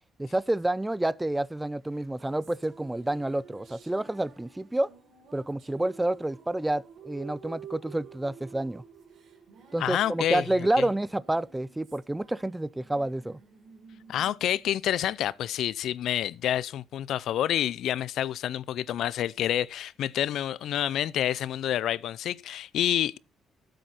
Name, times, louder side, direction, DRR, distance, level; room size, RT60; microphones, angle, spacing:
voice 1, 0.2-4.9 5.3-8.8 9.7-13.4, right 1 dB, 10° right, 0.5 m, -29 dB
sound 1, 1.9-15.6, right 7 dB, 65° right, 4.0 m, -51 dB
voice 2, 9.8-10.5 10.8-10.9 14.1-23.2, left 11 dB, 75° left, 0.6 m, -28 dB
13.5 x 7.9 x 4.3 m
cardioid pair, 90°, 0 cm